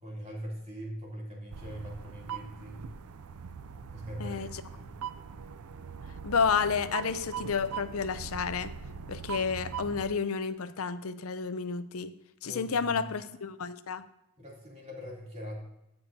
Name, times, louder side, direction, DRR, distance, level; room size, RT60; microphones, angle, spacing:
voice 1, 0.0-2.9 3.9-4.4 4.7-4.9 12.4-12.9 14.4-15.6, equal, 30° right, -3 dB, 2.9 m, -42 dB
sound 1, 1.5-10.1, right 7 dB, 85° right, 0.5 m, -41 dB
voice 2, 4.2-4.6 6.2-8.7 9.1-12.1 12.4-14.0, left 5 dB, 75° left, 13 dB, 0.6 m, -31 dB
15.5 x 6.9 x 2.8 m, 0.86 s
head